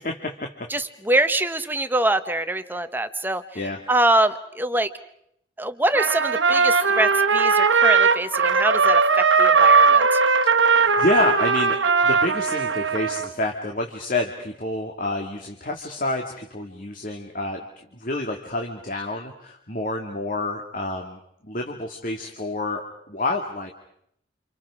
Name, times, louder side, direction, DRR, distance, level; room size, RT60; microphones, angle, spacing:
voice 1, 0.0-0.7 3.5-3.8 10.6-17.6 17.9-23.7, left 2 dB, 45° left, 2 dB, 2.3 m, -28 dB
voice 2, 0.7-3.6 3.9-4.9 5.6-10.2, right 1 dB, 10° right, 10 dB, 1.1 m, -24 dB
Trumpet, 5.9-13.3, right 5 dB, 75° right, 1.5 m, -19 dB
29.5 x 28.5 x 4.9 m, 0.71 s
head